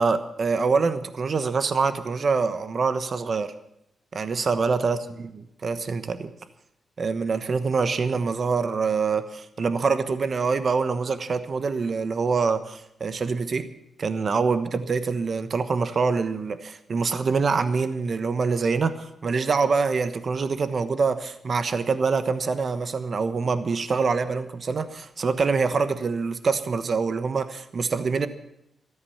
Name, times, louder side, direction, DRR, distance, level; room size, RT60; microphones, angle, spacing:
voice 1, 0.0-3.5 4.1-6.3 7.0-13.7 14.0-28.3, right 4 dB, 50° right, 11 dB, 1.1 m, -25 dB
14.0 x 13.5 x 7.3 m, 0.80 s
cardioid pair, 100°, 0 cm